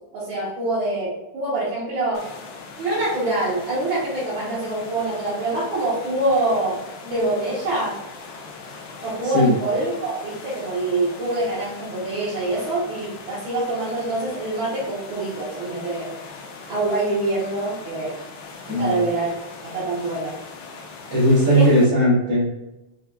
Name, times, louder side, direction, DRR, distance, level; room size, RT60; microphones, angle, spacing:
voice 1, 0.1-2.3 2.8-8.0 9.0-16.1 16.7-18.2 18.8-19.3 19.6-20.4 21.5-21.7, right 2 dB, 70° right, -8 dB, 1.7 m, -25 dB
sound 1, 2.1-21.9, left 4 dB, 75° left, 1.4 m, -40 dB
voice 2, 9.2-9.6 18.7-19.0 21.1-22.5, equal, 90° right, -11 dB, 2.3 m, -18 dB
5.4 x 2.2 x 2.2 m, 0.99 s
omnidirectional pair, 2.3 m